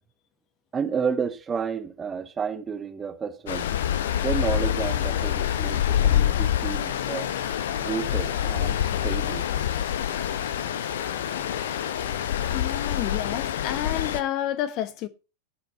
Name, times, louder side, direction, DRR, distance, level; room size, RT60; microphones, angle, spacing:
voice 1, 0.7-3.7 4.2-7.3 7.8-9.4, right 6 dB, 20° right, 1.4 m, -31 dB
Stream, 3.5-14.2, left 10 dB, 60° left, 0.9 m, -26 dB
voice 2, 12.5-15.1, left 12 dB, 40° left, 1.2 m, -30 dB
18.0 x 6.2 x 4.3 m
figure-of-eight pair, 90°, 0 cm